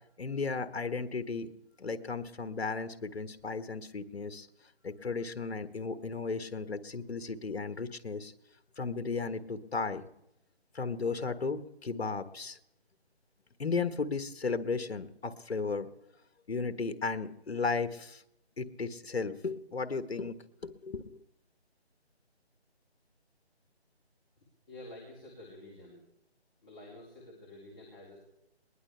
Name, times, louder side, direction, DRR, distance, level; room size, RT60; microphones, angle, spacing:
voice 1, 0.2-1.5 1.8-4.5 4.8-8.3 8.8-10.1 10.7-12.6 13.6-15.9 16.5-18.2 18.6-20.4 20.6-21.2, left 4 dB, 70° left, 10 dB, 1.5 m, -35 dB
voice 2, 24.7-26.0 26.6-28.2, left 1 dB, 25° left, -5 dB, 3.9 m, -49 dB
21.5 x 19.5 x 3.4 m, 0.84 s
figure-of-eight pair, 165°, 33 cm